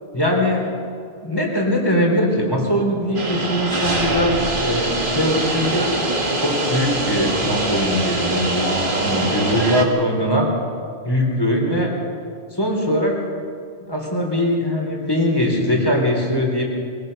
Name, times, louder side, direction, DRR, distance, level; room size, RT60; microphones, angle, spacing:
voice 1, 0.1-0.7 1.2-5.9 6.4-10.5 11.0-11.9 12.5-13.2 13.9-16.6, equal, 20° left, 0 dB, 3.8 m, -21 dB
sound 1, 3.1-9.8, right 2 dB, 50° right, 2.1 m, -23 dB
23.0 x 17.0 x 6.8 m, 2.3 s
omnidirectional pair, 1.2 m